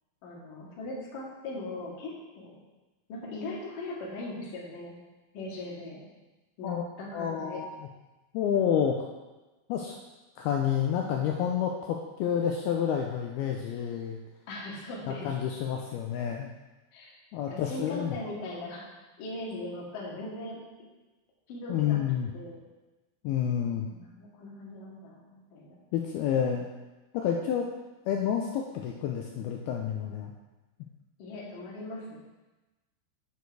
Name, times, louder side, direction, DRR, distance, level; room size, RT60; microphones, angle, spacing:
voice 1, 0.2-2.6 3.1-5.0 5.3-6.0 6.6-7.6 14.5-15.4 16.9-17.1 17.5-18.9 19.2-20.6 21.5-22.0 22.3-22.6 23.9-25.8 31.2-32.2, left 2 dB, 55° left, -4 dB, 3.2 m, -39 dB
voice 2, 7.1-7.7 8.3-9.1 9.7-10.0 10.4-14.2 15.2-16.5 17.3-18.1 21.7-22.3 23.2-23.9 25.9-26.7 27.1-27.7 28.1-30.3, left 8 dB, 90° left, 1 dB, 2.2 m, -29 dB
9.5 x 6.5 x 4.7 m, 1.1 s
omnidirectional pair, 5.1 m